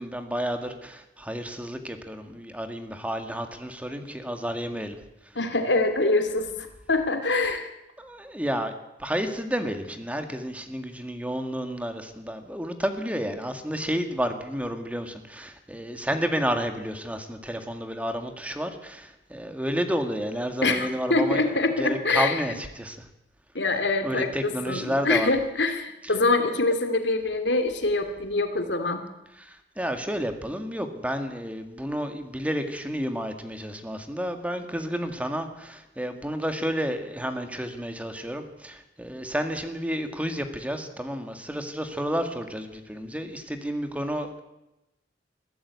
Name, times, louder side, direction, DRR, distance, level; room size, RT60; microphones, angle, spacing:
voice 1, 0.0-5.0 8.0-8.7 9.0-23.0 24.0-25.3 29.8-44.4, equal, 10° right, 7 dB, 2.0 m, -31 dB
voice 2, 5.4-7.7 20.6-22.4 23.5-29.0, left 3 dB, 85° left, 7 dB, 2.7 m, -25 dB
21.5 x 14.5 x 8.5 m, 0.94 s
head